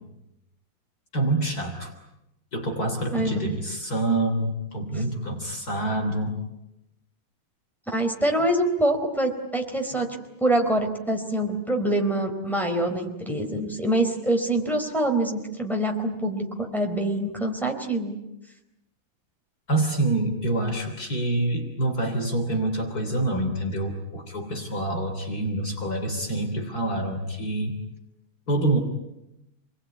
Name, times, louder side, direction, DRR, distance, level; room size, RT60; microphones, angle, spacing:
voice 1, 1.1-1.9 2.5-6.4 19.7-27.8 28.5-28.8, right 2 dB, 45° left, 3 dB, 3.7 m, -26 dB
voice 2, 7.9-10.1 10.4-18.2, right 1 dB, ahead, 2 dB, 3.9 m, -25 dB
29.0 x 21.0 x 9.5 m, 0.90 s
omnidirectional pair, 2.2 m